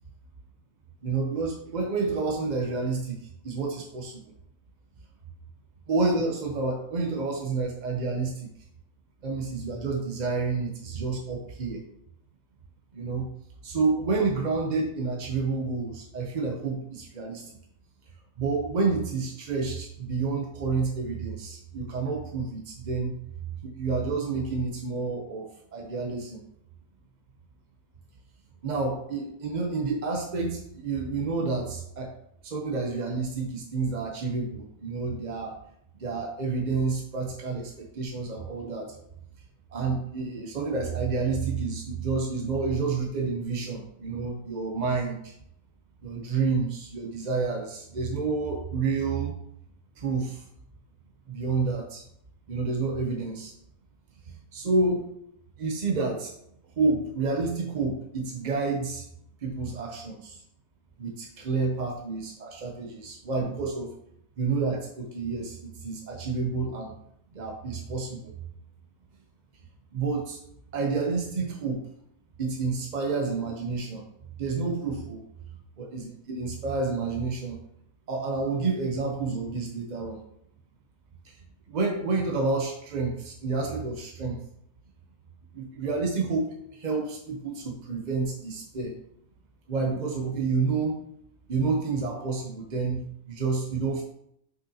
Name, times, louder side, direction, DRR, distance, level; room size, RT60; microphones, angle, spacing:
voice 1, 1.0-4.2 5.9-8.5 9.2-11.8 12.9-13.3 13.6-17.6 18.4-23.2 23.6-26.4 28.6-32.1 32.4-35.6 36.0-39.0 39.7-45.3 46.0-49.4 50.0-50.5 51.3-52.0 52.5-53.5 54.5-55.1 55.6-56.3 56.8-59.0 59.4-60.4 61.0-63.9 64.4-66.9 67.3-68.3 69.9-70.4 70.7-71.8 72.4-74.0 74.4-75.3 75.8-77.6 78.1-80.2 81.2-81.3 81.7-84.4 85.5-89.0 89.7-91.0 91.5-94.0, right 4 dB, 45° right, 1 dB, 0.6 m, -29 dB
6.4 x 5.4 x 2.7 m, 0.73 s
omnidirectional pair, 1.6 m